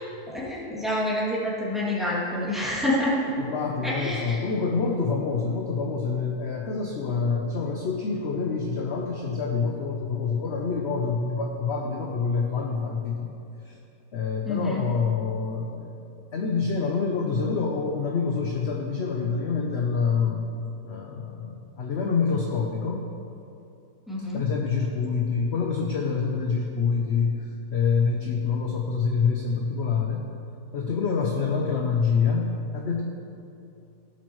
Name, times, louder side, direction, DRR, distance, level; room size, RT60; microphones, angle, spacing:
voice 1, 0.3-3.3 3.8-4.4 14.4-14.8 24.1-24.4, left 1 dB, ahead, -7 dB, 2.5 m, -27 dB
voice 2, 3.4-13.3 13.6-13.8 14.1-20.4 20.8-23.0 24.3-30.3 30.7-33.0, left 5 dB, 50° left, 0 dB, 1.0 m, -26 dB
17.5 x 8.4 x 3.2 m, 2.7 s
omnidirectional pair, 1.6 m